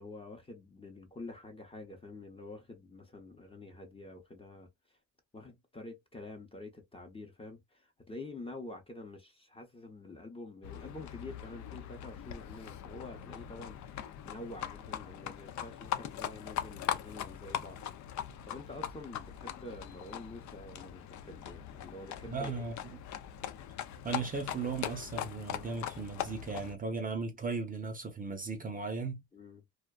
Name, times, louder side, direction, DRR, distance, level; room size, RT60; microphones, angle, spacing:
voice 1, 0.0-4.7 5.3-17.8 18.2-22.6 29.3-29.6, left 2 dB, 20° left, 0.7 m, -47 dB
Livestock farm animals working animals, 10.6-26.7, left 10 dB, 70° left, 0.5 m, -41 dB
voice 2, 22.3-23.0 24.0-29.2, right 4 dB, 30° right, 0.6 m, -37 dB
2.5 x 2.2 x 2.2 m
cardioid pair, 90°, 30 cm